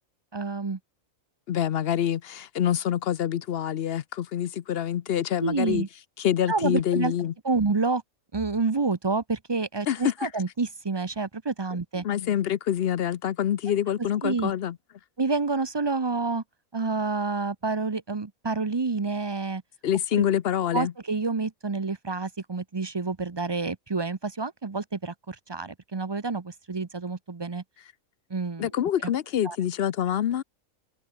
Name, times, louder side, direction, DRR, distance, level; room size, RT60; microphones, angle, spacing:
voice 1, 0.3-0.8 5.4-5.9 6.5-7.1 7.5-8.0 8.3-12.0 14.0-14.5 15.2-16.4 16.7-19.6 20.1-20.2 20.7-27.6 28.3-29.1 29.4-29.6, right 4 dB, 25° right, 0.6 m, -28 dB
voice 2, 1.5-5.8 6.2-7.3 9.9-10.3 12.0-14.8 19.8-20.9 28.6-30.4, left 10 dB, 55° left, 0.7 m, -26 dB
omnidirectional pair, 1.4 m